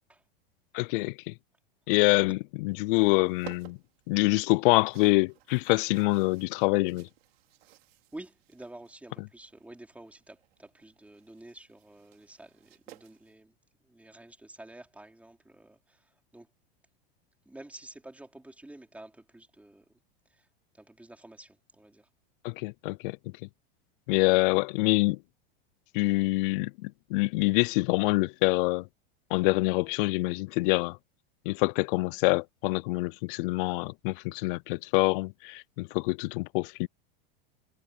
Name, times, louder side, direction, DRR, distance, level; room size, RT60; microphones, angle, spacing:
voice 1, 0.7-1.3 1.9-3.8 4.1-7.1 22.4-23.2 24.1-25.2 25.9-28.9 29.3-31.0 31.5-36.9, left 24 dB, 60° left, 0.4 m, -26 dB
sound 1, 2.7-13.3, right 16 dB, 80° right, 4.3 m, -55 dB
voice 2, 8.1-13.5 13.8-16.5 17.4-19.9 20.3-20.5 20.7-22.1, right 1 dB, 5° right, 4.5 m, -49 dB
supercardioid pair, 125°, 30 cm